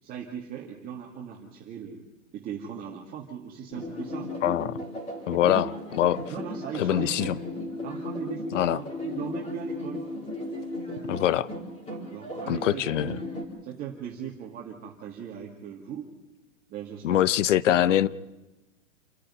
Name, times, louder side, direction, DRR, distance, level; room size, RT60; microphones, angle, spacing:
voice 1, 0.0-2.0 2.3-4.3 5.3-5.7 6.3-7.5 7.8-10.0 11.9-13.2 13.6-16.1 16.7-17.2 17.5-18.0, right 8 dB, 20° right, -2 dB, 2.2 m, -38 dB
sound 1, 3.7-13.4, left 1 dB, 15° left, 4.4 m, -36 dB
voice 2, 4.4-4.8 5.3-5.7 5.9-6.2 6.7-7.4 8.5-8.8 11.1-11.5 12.5-13.2 17.0-18.1, left 12 dB, 70° left, 19 dB, 0.9 m, -23 dB
28.5 x 10.0 x 9.9 m, 1.1 s
supercardioid pair, 155°, 39 cm